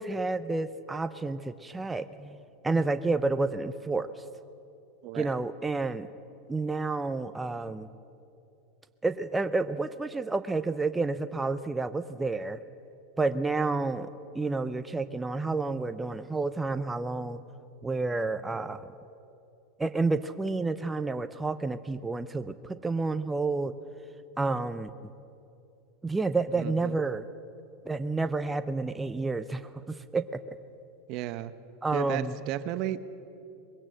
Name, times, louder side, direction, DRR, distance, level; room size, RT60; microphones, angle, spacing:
voice 1, 0.0-2.4 2.6-4.2 5.1-6.1 6.5-7.9 9.0-12.6 13.2-17.4 17.8-18.9 19.8-23.8 24.4-24.9 26.0-27.3 27.9-30.4 31.8-32.4, right 3 dB, 10° right, 11 dB, 0.6 m, -30 dB
voice 2, 5.0-5.3 26.6-27.0 31.1-31.5 31.9-33.2, right 12 dB, 55° right, 13 dB, 0.9 m, -34 dB
21.5 x 16.5 x 7.6 m, 2.7 s
hypercardioid pair, 105°, 0 cm